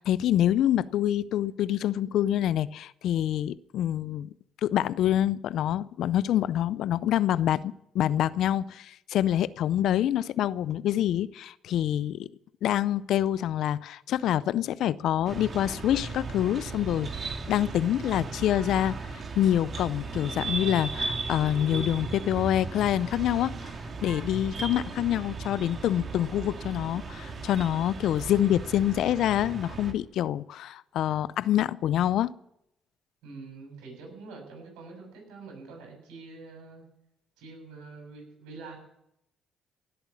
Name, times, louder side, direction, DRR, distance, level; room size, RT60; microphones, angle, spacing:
voice 1, 0.0-4.3 4.6-12.3 12.6-23.7 24.0-32.3, left 11 dB, 75° left, 0.5 m, -26 dB
sound 1, 15.2-29.9, right 4 dB, 50° right, 2.3 m, -36 dB
voice 2, 33.2-36.8 37.4-38.8, right 3 dB, 85° right, 7.1 m, -45 dB
17.0 x 8.1 x 9.8 m
supercardioid pair, 65°, 0 cm